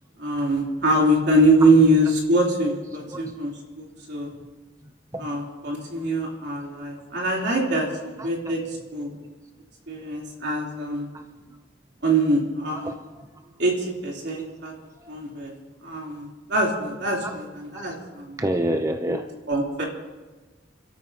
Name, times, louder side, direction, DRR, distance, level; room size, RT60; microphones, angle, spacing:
voice 1, 0.2-4.3 5.2-9.1 9.9-11.1 12.0-12.9 13.6-14.7 15.1-15.5 15.8-18.4 19.1-19.2 19.5-19.8, right 1 dB, 65° right, -2 dB, 3.5 m, -23 dB
voice 2, 8.2-8.5 11.1-11.2 12.8-12.9 15.0-15.1 17.2-17.4 17.7-17.9 18.4-19.3, right 1 dB, 15° right, 6 dB, 0.6 m, -28 dB
29.5 x 13.0 x 2.9 m, 1.3 s
head